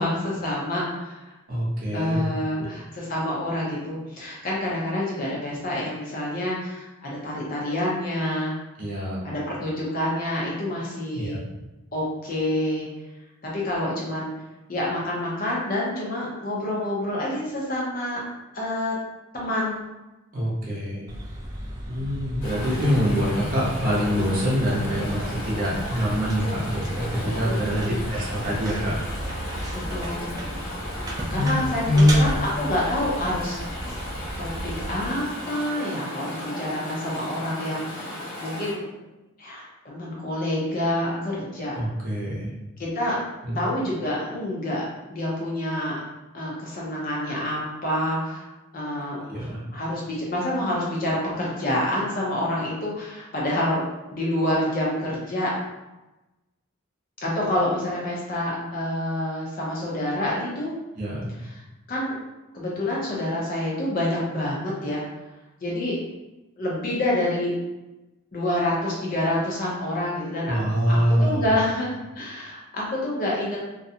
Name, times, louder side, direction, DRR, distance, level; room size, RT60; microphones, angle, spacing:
voice 1, 0.0-1.3 1.9-8.5 9.2-11.4 11.9-12.8 13.4-14.3 14.7-18.2 18.5-18.9 19.3-19.8 27.5-28.0 29.9-30.3 31.3-33.6 34.4-34.5 34.8-38.8 39.4-41.7 42.8-43.2 43.5-46.0 46.3-48.4 48.7-53.8 54.1-55.5 57.2-60.7 61.4-61.6 61.9-62.1 62.5-65.0 65.6-66.0 66.6-67.5 68.3-70.5 70.9-73.6, left 1 dB, 40° left, -5 dB, 0.6 m, -27 dB
voice 2, 1.5-2.2 2.6-2.7 8.8-9.2 11.1-11.4 20.3-21.1 21.8-29.0 31.3-31.5 31.8-32.2 41.7-42.5 43.4-43.5 49.1-49.6 61.0-61.3 70.5-71.5, equal, 40° right, -5 dB, 0.7 m, -24 dB
sound 1, 21.1-35.1, right 1 dB, 15° right, 0.3 m, -34 dB
Chatter / Stream, 22.4-38.7, left 1 dB, 80° left, 0.9 m, -36 dB
2.5 x 2.2 x 2.7 m, 1.0 s
head